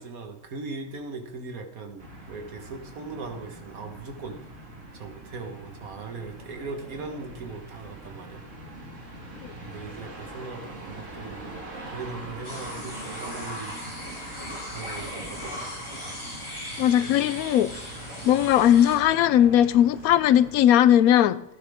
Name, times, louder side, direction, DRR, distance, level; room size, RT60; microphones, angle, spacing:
voice 1, 0.0-4.4 4.9-8.4 9.6-11.5 11.9-13.8 14.5-16.0, right 3 dB, 75° right, 1.9 m, -39 dB
sound 1, 2.0-20.6, right 2 dB, 60° right, 2.3 m, -43 dB
sound 2, 12.4-19.0, left 1 dB, 20° left, 3.3 m, -38 dB
voice 2, 16.8-17.7 18.2-21.4, left 11 dB, 80° left, 1.0 m, -18 dB
15.5 x 9.5 x 3.6 m
omnidirectional pair, 1.5 m